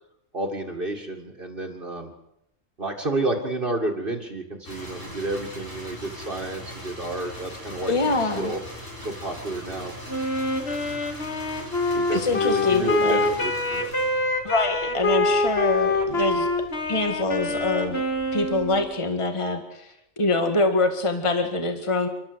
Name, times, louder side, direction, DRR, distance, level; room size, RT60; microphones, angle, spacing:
voice 1, 0.3-2.1 2.8-8.6 9.0-9.9 11.9-13.9, right 2 dB, 45° right, 1 dB, 2.2 m, -30 dB
sound 1, 4.6-18.8, equal, 75° left, 7.6 m, -41 dB
voice 2, 7.9-8.5 12.1-13.2 14.4-16.5 16.8-18.0 18.3-22.1, left 2 dB, 25° left, 5 dB, 1.9 m, -24 dB
Wind instrument woodwind instrument, 10.1-18.9, left 2 dB, 55° left, 2.3 m, -25 dB
30.0 x 12.0 x 8.0 m, 0.85 s
omnidirectional pair, 1.3 m